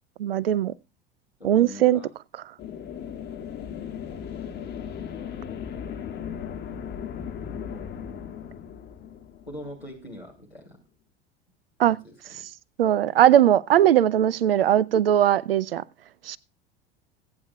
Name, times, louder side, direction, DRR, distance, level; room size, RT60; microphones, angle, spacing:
voice 1, 0.2-0.7 1.4-2.0 11.8-12.0 12.8-15.8 16.3-16.4, right 11 dB, 70° right, 0.6 m, -19 dB
voice 2, 1.4-2.1 9.5-10.8 11.9-12.4 13.0-13.1, left 1 dB, 90° left, 2.8 m, -42 dB
sound 1, 2.6-10.1, left 8 dB, 35° left, 2.2 m, -37 dB
21.5 x 9.0 x 2.3 m
figure-of-eight pair, 75°, 31 cm